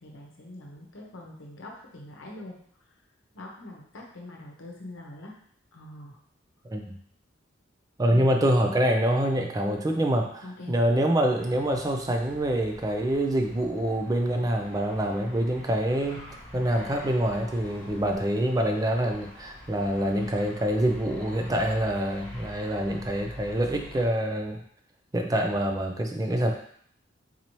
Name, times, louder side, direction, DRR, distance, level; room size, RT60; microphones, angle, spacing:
voice 1, 0.0-2.9 3.3-5.3 5.7-6.2 10.4-10.8, left 1 dB, 80° left, -1 dB, 0.8 m, -43 dB
voice 2, 8.0-24.6 25.1-26.5, right 1 dB, 20° right, 3 dB, 0.4 m, -26 dB
sound 1, 11.4-24.1, left 1 dB, 45° left, 1.3 m, -46 dB
4.1 x 2.8 x 3.0 m, 0.62 s
head